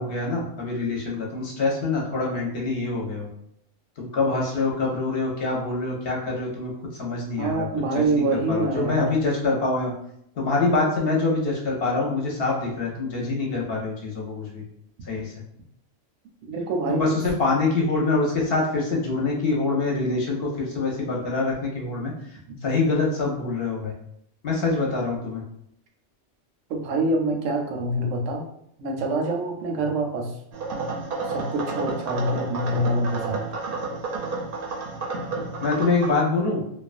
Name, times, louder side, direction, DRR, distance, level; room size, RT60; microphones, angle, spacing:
voice 1, 0.0-3.3 4.0-6.7 7.0-9.9 10.4-14.6 15.1-15.3 16.9-22.1 22.6-23.9 24.4-25.4 35.6-36.6, left 3 dB, 60° left, -2 dB, 0.7 m, -25 dB
voice 2, 7.4-9.1 16.5-17.2 26.7-28.5 28.8-30.3 31.3-33.4, right 2 dB, 80° right, 2 dB, 0.9 m, -25 dB
sound 1, 30.5-36.1, right 3 dB, 60° right, 0.6 m, -31 dB
2.3 x 2.2 x 2.4 m, 0.72 s
omnidirectional pair, 1.2 m